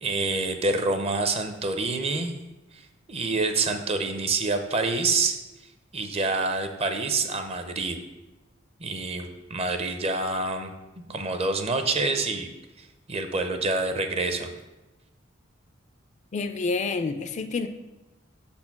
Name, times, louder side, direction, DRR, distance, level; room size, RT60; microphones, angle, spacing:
voice 1, 0.0-2.3 2.7-2.8 3.1-5.4 5.9-8.0 8.8-10.7 11.1-12.5 12.8-14.5, right 3 dB, 30° right, 7 dB, 0.6 m, -27 dB
voice 2, 16.3-17.7, left 4 dB, 35° left, 9 dB, 0.4 m, -28 dB
6.1 x 4.4 x 5.8 m, 1.0 s
head